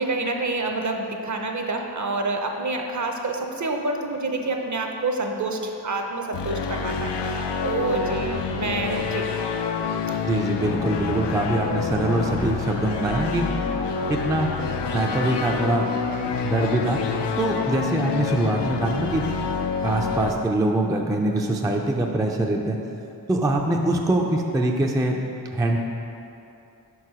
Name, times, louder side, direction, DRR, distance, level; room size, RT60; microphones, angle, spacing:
voice 1, 0.0-9.3, right 2 dB, 45° right, 3 dB, 0.6 m, -28 dB
sound 1, 6.3-20.3, left 5 dB, 85° left, 0.5 m, -27 dB
voice 2, 10.3-13.5 14.1-14.5 14.9-15.9 16.4-17.0 17.4-19.3 19.8-22.8 23.3-25.2 25.5-25.8, right 2 dB, 10° right, 1 dB, 0.3 m, -23 dB
5.8 x 4.7 x 4.8 m, 2.8 s
wide cardioid pair, 85°, 41 cm